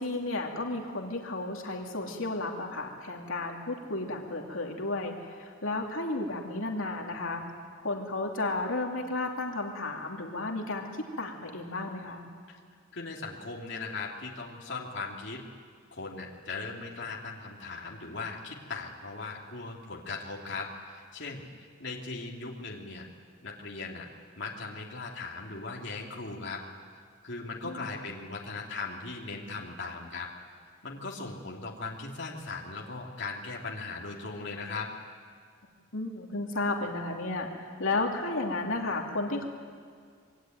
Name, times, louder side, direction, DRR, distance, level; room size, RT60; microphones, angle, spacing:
voice 1, 0.0-7.4 7.8-12.2 27.6-27.9 35.9-39.5, left 2 dB, 75° left, 1 dB, 2.8 m, -33 dB
voice 2, 12.9-15.4 15.9-23.1 23.4-24.1 24.4-26.6 27.2-30.3 30.8-34.9, left 3 dB, 55° left, -2 dB, 2.7 m, -38 dB
26.5 x 22.5 x 9.3 m, 2.1 s
head